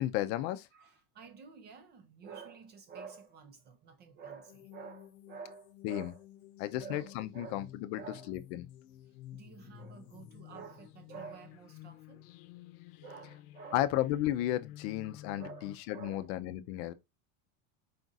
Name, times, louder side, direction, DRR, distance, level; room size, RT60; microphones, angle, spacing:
voice 1, 0.0-0.7 5.8-6.1 6.6-7.6 7.9-8.0 8.3-8.4 13.7-16.9, left 14 dB, 50° left, 0.5 m, -33 dB
voice 2, 0.7-6.3 6.8-8.4 9.3-12.3 13.0-13.9 15.3-16.3, right 6 dB, 25° right, 0.4 m, -50 dB
sound 1, 4.5-15.8, left 13 dB, 85° left, 0.7 m, -53 dB
5.0 x 2.4 x 3.9 m
supercardioid pair, 150°, 43 cm